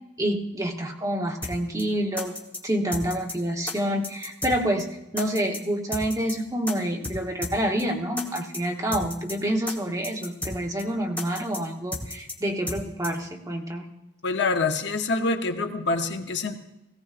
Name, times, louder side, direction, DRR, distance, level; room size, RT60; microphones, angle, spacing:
voice 1, 0.2-2.4 2.6-13.9, right 1 dB, 20° right, 1 dB, 0.9 m, -28 dB
sound 1, 1.4-1.5 1.8-1.9 2.2-2.6 2.9-3.3 3.7-3.8 4.0-4.5 4.8-4.9 5.2-5.6 5.9-6.3 6.7-6.8 7.0-7.2 7.4-7.5 7.8-7.9 8.2-8.6 8.9-9.3 9.7-9.8 10.0-10.5 10.8-10.9 11.2-11.6 11.9-12.3 12.7-12.8 13.0-13.1, left 2 dB, 10° left, 1.2 m, -33 dB
voice 2, 14.2-16.6, left 3 dB, 70° left, 6 dB, 0.8 m, -26 dB
17.5 x 16.0 x 2.5 m, 0.93 s
head